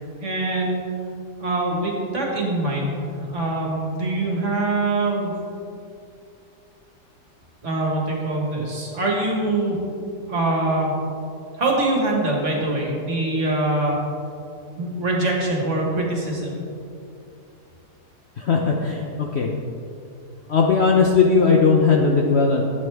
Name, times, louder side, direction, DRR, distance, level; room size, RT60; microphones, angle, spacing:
voice 1, 0.2-0.8 1.4-5.3 7.6-9.8 10.3-11.0 11.6-14.0 14.8-16.6, right 2 dB, 45° right, -1 dB, 1.9 m, -23 dB
voice 2, 18.4-19.5 20.5-22.6, left 4 dB, 55° left, 0 dB, 0.7 m, -18 dB
12.5 x 8.1 x 3.5 m, 2.6 s
omnidirectional pair, 1.8 m